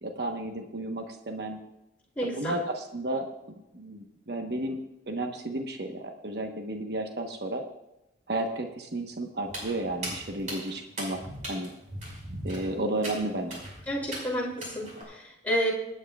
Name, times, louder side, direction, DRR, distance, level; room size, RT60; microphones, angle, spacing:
voice 1, 0.0-1.6 2.2-3.3 3.7-7.6 8.3-11.2 11.5-11.7 12.4-13.6, right 1 dB, 60° right, 3 dB, 1.1 m, -33 dB
voice 2, 2.2-2.5 13.9-15.7, equal, 10° left, -6 dB, 3.0 m, -30 dB
Walk footsteps, 9.4-15.0, right 1 dB, 45° right, 5.3 m, -40 dB
25.5 x 9.4 x 2.4 m, 0.90 s
head